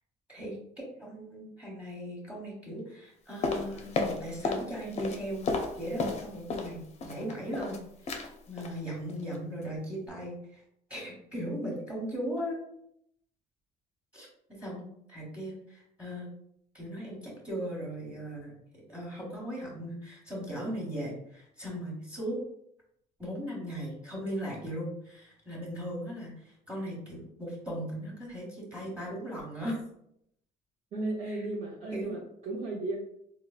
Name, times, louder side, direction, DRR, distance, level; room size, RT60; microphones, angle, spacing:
voice 1, 0.3-5.5 5.8-7.8 8.0-10.6 10.9-12.6 14.1-16.3 16.7-18.5 18.9-22.4 23.2-29.8 31.2-31.5 31.9-32.2, equal, 10° right, -3 dB, 1.1 m, -38 dB
sound 1, 3.4-4.7 4.9-6.7 7.0-7.8 8.1-8.3 8.6-8.8 9.1-9.4 9.6-9.7, left 3 dB, 40° left, 0.5 m, -32 dB
voice 2, 30.9-33.0, right 2 dB, 45° right, -5 dB, 0.7 m, -34 dB
3.9 x 2.0 x 2.4 m, 0.73 s
cardioid pair, 110°, 17 cm